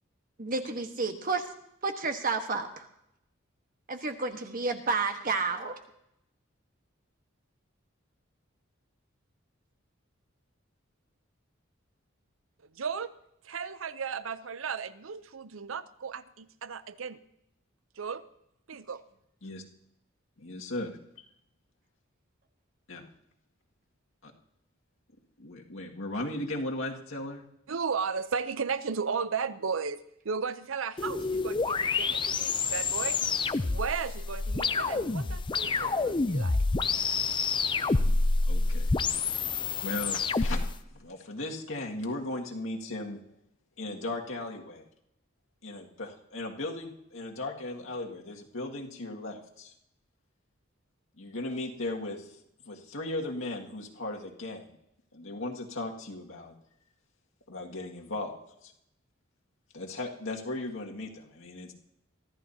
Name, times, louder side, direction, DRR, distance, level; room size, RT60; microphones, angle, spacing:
voice 1, 0.4-1.5 1.8-2.9 3.9-5.8, right 4 dB, 45° right, 6 dB, 1.4 m, -31 dB
voice 2, 12.8-13.1 13.4-17.2 18.0-18.2 18.7-19.0 27.7-33.2 33.5-36.6, right 5 dB, 80° right, 14 dB, 0.7 m, -35 dB
voice 3, 20.4-21.2 22.9-23.0 24.2-24.3 25.4-27.4 38.5-38.9 39.3-39.4 39.8-40.6 40.9-43.2 43.8-44.9 45.6-49.7 51.2-52.4 52.7-54.7 55.1-56.5 57.5-58.3 58.6-58.7 59.7-61.7, left 2 dB, 75° left, 0 dB, 2.1 m, -37 dB
sound 1, 31.0-40.7, left 4 dB, 25° left, 0.5 m, -28 dB
23.5 x 14.0 x 2.8 m, 0.78 s
head